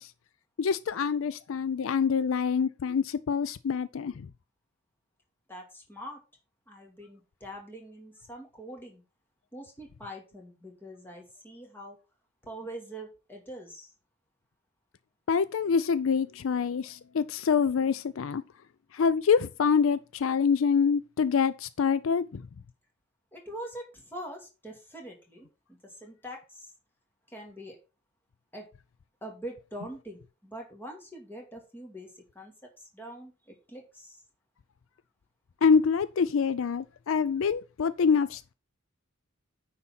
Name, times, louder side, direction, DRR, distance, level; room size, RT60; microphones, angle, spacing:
voice 1, 0.6-4.1 15.3-18.4 19.0-22.4 35.6-38.5, left 6 dB, 70° left, 0.4 m, -26 dB
voice 2, 5.5-6.2 6.7-9.0 9.5-12.0 12.4-13.9 23.3-26.7 27.3-27.8 28.5-28.7 29.2-34.2, right 1 dB, 10° left, 2.5 m, -44 dB
9.6 x 4.2 x 5.9 m
head